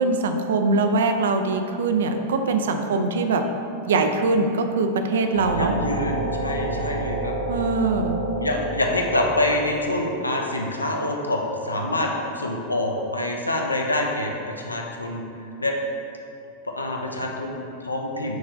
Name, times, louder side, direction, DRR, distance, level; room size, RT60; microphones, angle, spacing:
voice 1, 0.0-3.4 3.9-5.7 7.5-8.2, right 3 dB, 60° right, 6 dB, 0.3 m, -22 dB
sound 1, 5.3-10.8, right 2 dB, 85° right, 0.7 m, -30 dB
voice 2, 5.4-7.3 8.3-15.2 15.6-15.8 16.7-18.4, left 1 dB, 80° left, 1 dB, 0.4 m, -26 dB
6.0 x 3.1 x 2.6 m, 2.6 s
figure-of-eight pair, 90°, 0 cm